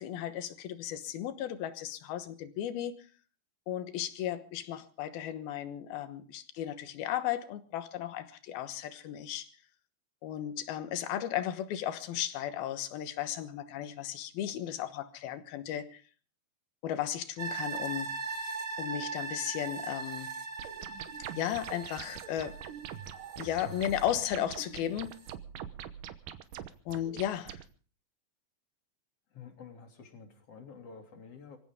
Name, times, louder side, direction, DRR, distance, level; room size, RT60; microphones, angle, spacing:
voice 1, 0.0-2.9 3.7-9.5 10.2-16.0 16.8-18.2 18.8-20.3 21.4-22.6 23.4-25.2 26.9-27.6, left 11 dB, 80° left, 10 dB, 3.1 m, -35 dB
sound 1, 17.4-24.7 25.1-25.2, right 4 dB, 30° right, 1.3 m, -40 dB
sound 2, 20.6-27.6, right 10 dB, 70° right, 2.5 m, -44 dB
voice 2, 29.3-31.6, left 6 dB, 40° left, 3 dB, 3.6 m, -49 dB
24.5 x 16.0 x 3.7 m, 0.40 s
omnidirectional pair, 4.4 m